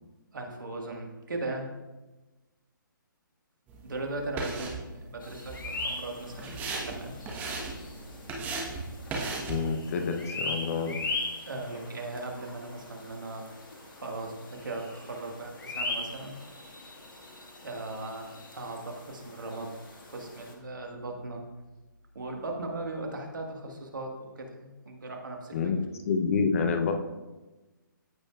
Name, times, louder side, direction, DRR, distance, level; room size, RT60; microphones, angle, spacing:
voice 1, 0.3-1.7 3.8-7.1 11.4-16.4 17.6-21.4 22.2-25.6, right 2 dB, 65° right, 2 dB, 1.7 m, -38 dB
sound 1, 3.7-9.7, right 3 dB, 15° right, 1.2 m, -37 dB
sound 2, 5.2-20.5, left 2 dB, 70° left, 1.9 m, -40 dB
voice 2, 9.5-11.1 25.5-26.9, left 5 dB, 40° left, 6 dB, 0.8 m, -28 dB
14.5 x 5.2 x 2.4 m, 1.1 s
figure-of-eight pair, 140°, 11 cm